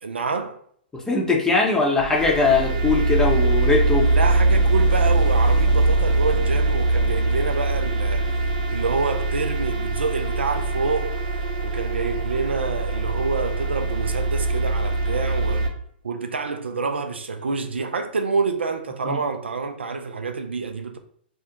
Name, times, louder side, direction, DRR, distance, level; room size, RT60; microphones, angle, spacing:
voice 1, 0.0-0.6 4.1-8.3 8.7-11.2 11.6-15.7 16.0-21.0, right 4 dB, 80° right, 0.3 m, -27 dB
voice 2, 0.9-4.1 19.0-19.2, left 3 dB, 10° left, 0.6 m, -20 dB
sound 1, 2.0-15.7, right 2 dB, 40° right, 0.7 m, -22 dB
2.4 x 2.1 x 2.8 m
figure-of-eight pair, 115°, 6 cm